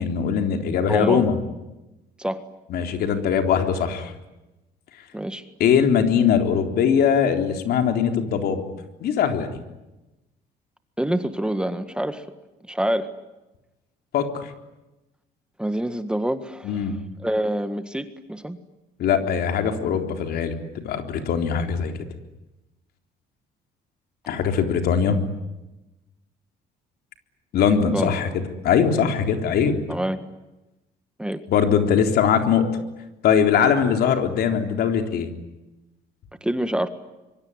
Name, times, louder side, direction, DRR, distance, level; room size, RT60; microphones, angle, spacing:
voice 1, 0.0-1.4 2.7-4.1 5.6-8.6 9.0-9.6 14.1-14.5 16.6-17.0 19.0-21.9 24.3-25.2 27.5-28.3 28.6-29.8 31.5-32.7 33.2-35.3, left 7 dB, 70° left, 5 dB, 3.8 m, -21 dB
voice 2, 0.9-1.2 2.2-2.4 5.1-5.4 11.0-12.3 12.7-13.1 15.6-16.8 17.2-18.6 27.9-28.1 29.9-30.2 31.2-31.4 36.4-36.9, right 1 dB, 5° right, 10 dB, 1.7 m, -26 dB
25.5 x 23.5 x 9.8 m, 1.0 s
cardioid pair, 110°, 17 cm